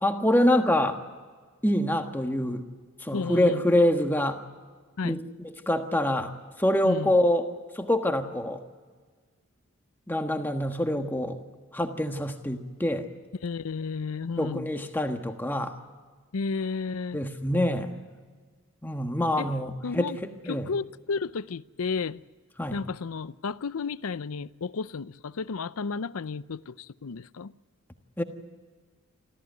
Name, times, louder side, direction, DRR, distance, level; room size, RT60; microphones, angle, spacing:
voice 1, 0.0-1.0 1.6-2.6 3.0-4.4 5.0-6.3 6.6-7.5 7.7-8.6 10.1-11.4 11.7-13.1 14.4-15.7 17.1-17.9 18.8-20.7 22.6-22.8 28.2-28.3, left 1 dB, 10° left, 1.4 m, -25 dB
voice 2, 3.1-3.7 5.0-5.2 6.8-7.1 13.4-14.7 16.3-17.2 19.4-19.5 19.8-20.2 20.5-22.2 22.7-27.5, left 4 dB, 80° left, 0.6 m, -32 dB
25.5 x 15.0 x 9.3 m
head